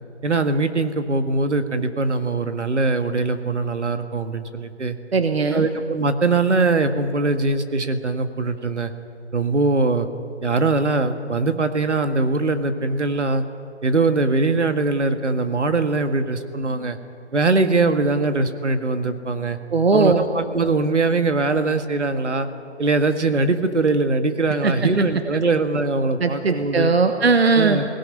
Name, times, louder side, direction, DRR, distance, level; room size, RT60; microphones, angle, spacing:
voice 1, 0.2-5.0 5.5-8.9 9.3-10.1 10.4-13.4 13.8-17.0 17.3-19.6 19.9-22.5 22.8-26.9 27.6-27.9, right 3 dB, 75° right, 8 dB, 1.9 m, -21 dB
voice 2, 5.1-5.6 19.7-20.2 24.6-24.7 26.2-27.8, right 4 dB, 60° right, 7 dB, 1.3 m, -18 dB
20.5 x 18.0 x 9.8 m, 2.6 s
hypercardioid pair, 180°, 35 cm